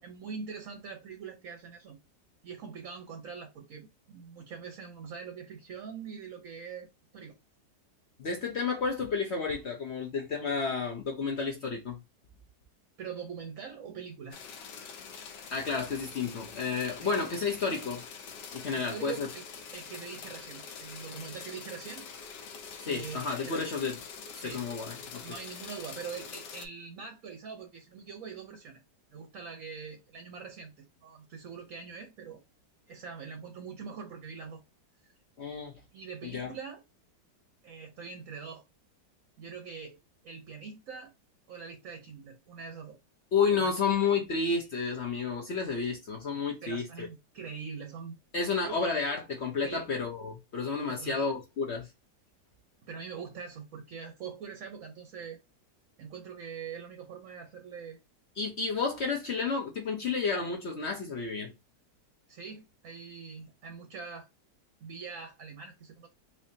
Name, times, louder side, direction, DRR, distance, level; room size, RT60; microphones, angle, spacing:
voice 1, 0.0-2.0 2.4-6.9 7.1-7.3 13.0-14.4 17.0-17.1 18.7-19.4 19.7-22.0 22.8-23.6 24.4-24.7 25.2-28.8 29.1-32.4 32.9-34.6 35.0-35.1 35.9-36.8 37.6-38.6 39.4-40.0 40.2-41.1 41.5-43.0 43.5-43.7 46.6-48.1 48.6-48.8 49.6-49.8 50.9-51.2 52.8-55.4 56.0-58.0 62.3-64.3 64.8-66.1, right 6 dB, 60° right, 0.9 m, -43 dB
voice 2, 8.2-12.0 15.5-18.0 18.5-19.3 22.8-24.0 24.3-25.2 35.4-35.8 36.2-36.5 43.3-47.1 48.3-51.9 58.4-61.5, left 5 dB, 55° left, 0.7 m, -31 dB
sound 1, 14.3-26.7, left 6 dB, 70° left, 1.4 m, -45 dB
4.3 x 2.7 x 2.7 m
omnidirectional pair, 2.0 m